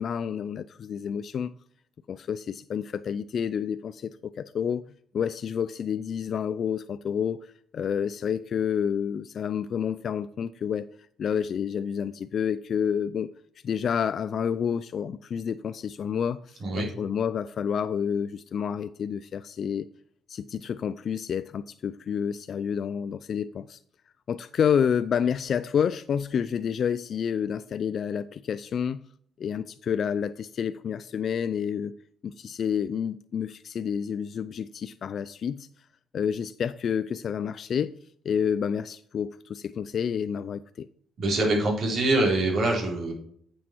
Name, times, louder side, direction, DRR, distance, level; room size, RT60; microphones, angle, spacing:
voice 1, 0.0-1.5 2.1-4.8 5.1-10.9 11.2-13.3 13.6-19.9 20.3-23.8 24.3-29.0 29.4-31.9 32.2-35.7 36.1-37.9 38.2-40.9, left 7 dB, 55° left, 0.3 m, -29 dB
voice 2, 41.2-43.1, right 2 dB, 55° right, 4.0 m, -24 dB
9.2 x 6.3 x 4.5 m
cardioid pair, 90°, 0 cm